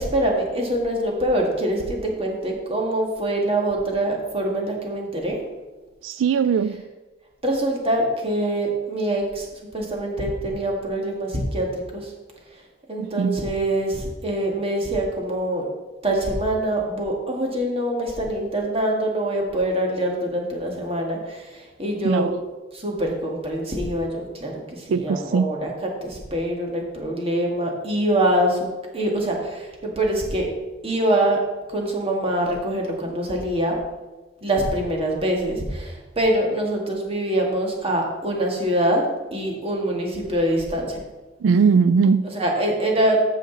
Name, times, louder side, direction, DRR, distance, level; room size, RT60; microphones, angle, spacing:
voice 1, 0.0-5.4 7.4-9.5 9.7-12.1 12.5-12.6 12.9-15.7 16.0-22.3 22.7-25.7 26.0-28.7 28.9-30.5 30.8-31.4 31.7-33.8 34.4-39.0 39.3-41.0 42.3-43.2, right 1 dB, 30° right, 0 dB, 1.8 m, -24 dB
voice 2, 6.0-6.9 13.0-13.4 22.0-22.3 24.9-25.5 41.4-42.3, right 5 dB, 85° right, 13 dB, 0.3 m, -20 dB
14.0 x 5.1 x 4.0 m, 1.2 s
head